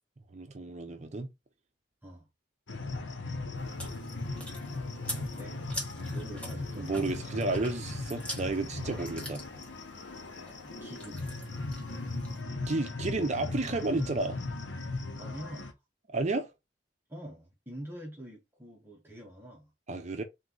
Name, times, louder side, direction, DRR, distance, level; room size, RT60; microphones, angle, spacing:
voice 1, 0.3-1.3 6.7-9.4 12.7-14.4 16.1-16.5 19.9-20.2, right 2 dB, 40° right, 0.6 m, -32 dB
sound 1, 2.7-15.7, left 2 dB, 75° left, 1.0 m, -38 dB
Chewing mastication, 3.6-12.4, equal, 5° left, 1.3 m, -45 dB
voice 2, 5.1-5.6 6.0-6.9 10.6-11.3 15.2-15.7 17.1-19.7, right 1 dB, 10° right, 1.0 m, -45 dB
3.5 x 3.1 x 3.9 m
head